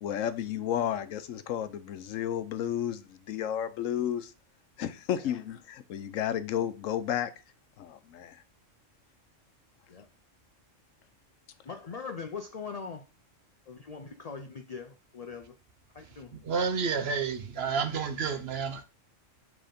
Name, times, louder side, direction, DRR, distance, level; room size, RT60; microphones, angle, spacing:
voice 1, 0.0-4.3 4.8-7.3 7.8-8.4, left 10 dB, 85° left, 1.0 m, -32 dB
voice 2, 11.6-13.0 13.7-15.6 15.9-16.4, left 5 dB, 55° left, 0.4 m, -41 dB
voice 3, 16.4-18.8, right 5 dB, 60° right, 0.9 m, -30 dB
7.7 x 3.5 x 5.1 m
omnidirectional pair, 1.3 m